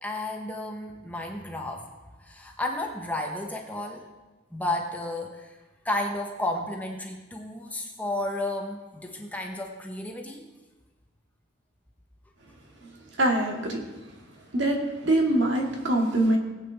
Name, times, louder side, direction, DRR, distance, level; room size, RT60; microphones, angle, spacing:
voice 1, 0.0-1.9 2.2-4.1 4.5-5.6 5.8-10.5, left 1 dB, 10° left, 1 dB, 1.0 m, -32 dB
voice 2, 13.2-13.8 14.5-16.4, right 1 dB, 65° right, 0 dB, 2.1 m, -23 dB
19.0 x 8.5 x 3.5 m, 1.2 s
head